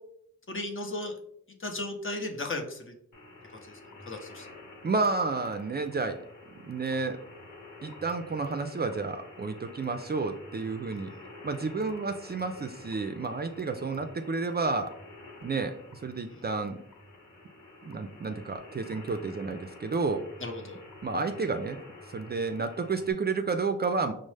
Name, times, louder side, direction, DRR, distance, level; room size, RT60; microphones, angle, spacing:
voice 1, 0.5-1.1 1.6-2.9 3.6-3.8 4.1-4.5 10.9-11.1 20.4-20.8, left 2 dB, 45° left, 3 dB, 0.8 m, -35 dB
sound 1, 3.1-23.1, left 2 dB, 85° left, 0.9 m, -49 dB
voice 2, 4.8-6.3 6.5-7.2 7.8-11.1 11.4-14.9 15.4-16.8 17.8-20.3 21.0-21.8 22.1-24.1, right 4 dB, 35° right, 7 dB, 0.4 m, -31 dB
5.1 x 2.0 x 3.2 m, 0.70 s
cardioid pair, 50°, 30 cm